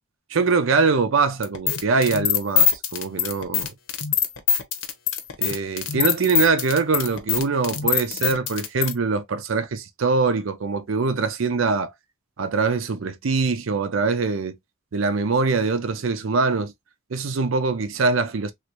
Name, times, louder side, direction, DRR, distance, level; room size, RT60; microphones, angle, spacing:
voice 1, 0.3-3.7 5.4-11.9 12.4-14.6 14.9-16.7 17.1-18.5, right 4 dB, 75° right, 0.5 m, -23 dB
sound 1, 1.4-8.9, left 9 dB, 70° left, 0.7 m, -23 dB
3.1 x 2.5 x 3.0 m
head